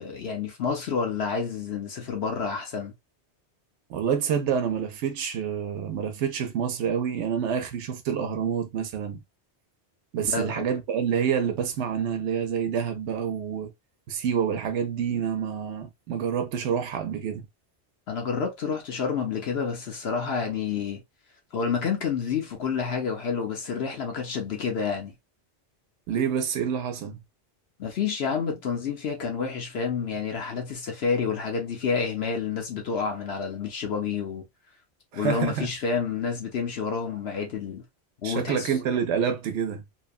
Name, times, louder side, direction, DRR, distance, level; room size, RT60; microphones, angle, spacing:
voice 1, 0.0-2.9 10.3-10.7 18.1-21.0 21.5-25.1 27.8-34.4 35.1-37.8 38.2-38.7, left 6 dB, 70° left, 1.0 m, -29 dB
voice 2, 3.9-9.2 10.1-13.7 14.1-17.5 26.1-27.2 35.1-35.7 38.2-39.8, right 7 dB, 90° right, 0.9 m, -27 dB
2.9 x 2.1 x 2.3 m
omnidirectional pair, 1.1 m